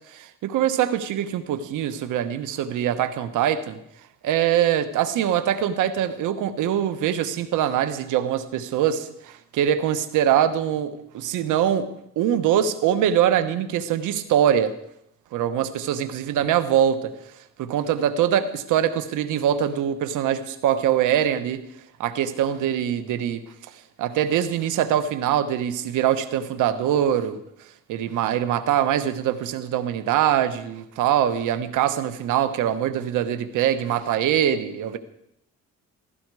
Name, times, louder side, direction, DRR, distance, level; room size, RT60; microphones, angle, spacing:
voice 1, 0.1-3.8 4.2-11.9 12.2-14.7 15.3-17.1 17.6-21.6 22.0-27.4 27.9-35.0, right 10 dB, 90° right, 12 dB, 1.3 m, -23 dB
16.5 x 15.0 x 4.9 m, 0.77 s
cardioid pair, 90°, 30 cm